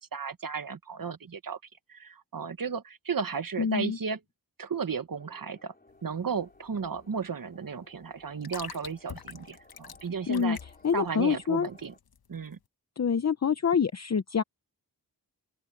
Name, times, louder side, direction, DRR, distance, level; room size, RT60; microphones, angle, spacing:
voice 1, 0.0-1.6 1.9-4.2 4.6-5.7 6.0-10.6 10.9-11.9 12.3-12.6, right 6 dB, 60° right, 1.4 m, -34 dB
voice 2, 3.6-4.0 10.3-10.6 10.8-11.7 13.0-14.4, left 6 dB, 45° left, 0.7 m, -26 dB
sound 1, 5.2-12.0, left 2 dB, 25° left, 6.5 m, -59 dB
sound 2, 5.9-12.6, left 7 dB, 70° left, 1.1 m, -47 dB
open air
wide cardioid pair, 100°, 38 cm